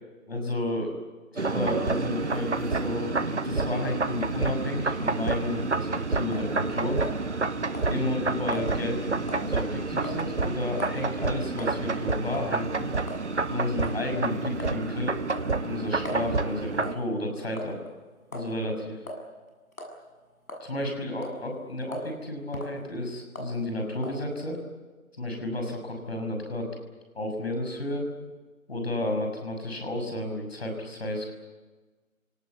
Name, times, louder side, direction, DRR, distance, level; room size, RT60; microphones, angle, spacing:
voice 1, 0.3-1.0 1.3-7.0 7.9-12.9 13.5-15.2 15.6-17.8 18.3-19.0 20.6-24.6 25.1-26.7 27.1-28.1 28.7-31.3, left 1 dB, 45° left, 3 dB, 6.4 m, -32 dB
sound 1, 1.4-16.9, right 3 dB, 55° right, 1.1 m, -29 dB
sound 2, 6.3-6.5 7.0-7.5 7.7-7.9 8.5-8.7 9.3-9.5 10.0-10.2 10.8-11.0 11.6-11.7 12.3-12.5 13.1-13.2 13.8-14.0 14.6-14.8 15.3-16.3 16.8-17.1 17.6-17.9 18.3-18.5 19.1-19.2 19.7-20.0 20.5-20.9 21.2-21.4 21.9-22.1 22.5-22.8 23.4-23.6 24.0-24.2, equal, 75° left, 7.5 m, -39 dB
29.0 x 18.5 x 8.4 m, 1.3 s
figure-of-eight pair, 160°, 43 cm